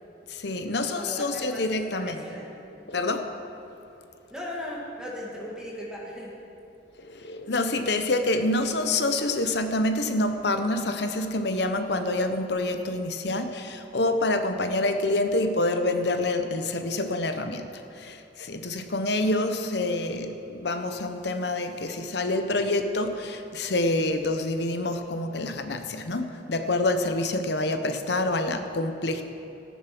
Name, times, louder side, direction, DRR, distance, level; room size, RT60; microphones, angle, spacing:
voice 1, 0.3-2.2 2.9-3.3 7.0-29.2, left 2 dB, 65° left, 7 dB, 0.9 m, -27 dB
voice 2, 0.9-1.6 1.9-2.5 2.8-2.9 4.3-6.4, left 1 dB, 5° right, -4 dB, 2.1 m, -37 dB
14.0 x 10.5 x 6.1 m, 2.9 s
head